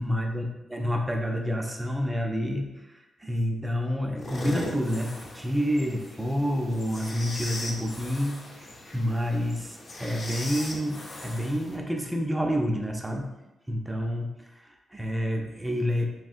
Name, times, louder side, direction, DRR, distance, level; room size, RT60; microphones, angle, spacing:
voice 1, 0.0-13.3 13.7-16.1, equal, 10° right, 2 dB, 0.4 m, -29 dB
sound 1, 4.2-11.8, left 2 dB, 40° left, 0.6 m, -39 dB
3.6 x 2.4 x 2.5 m, 1.0 s
cardioid pair, 125°, 0 cm